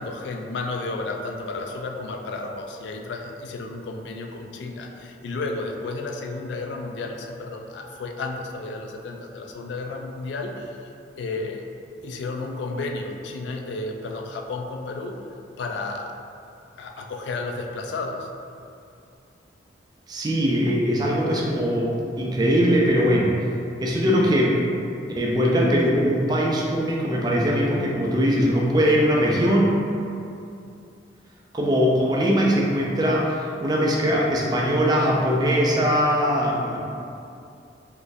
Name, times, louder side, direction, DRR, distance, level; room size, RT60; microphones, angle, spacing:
voice 1, 0.0-10.9 11.2-11.7 12.0-15.2 15.6-16.1 16.8-18.3 20.6-20.8, left 3 dB, 70° left, 2 dB, 0.3 m, -32 dB
voice 2, 20.1-23.4 23.8-24.6 25.1-29.8 31.5-36.8, equal, 20° right, -3 dB, 0.3 m, -21 dB
3.8 x 2.5 x 2.5 m, 2.5 s
head